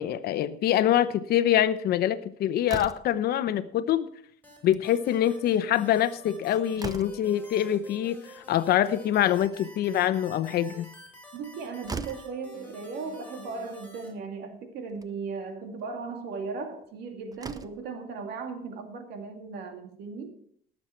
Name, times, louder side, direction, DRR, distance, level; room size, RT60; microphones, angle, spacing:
voice 1, 0.0-4.1 4.6-8.2 8.5-10.9, left 11 dB, 70° left, 13 dB, 0.9 m, -25 dB
Slam, 2.6-3.3 4.5-4.9 5.2-5.3 5.6-5.7 6.2-7.4 9.1-9.8 11.4-11.5 11.8-12.4 13.5-13.6 14.0-14.1 14.9-15.1 16.8-16.9 17.3-17.9, right 4 dB, 20° right, 0.8 m, -40 dB
sound 1, 4.4-14.1, equal, 10° left, 5.8 m, -49 dB
voice 2, 11.3-20.3, right 4 dB, 80° right, 5 dB, 2.3 m, -37 dB
18.5 x 7.5 x 4.5 m, 0.63 s
cardioid pair, 110°, 17 cm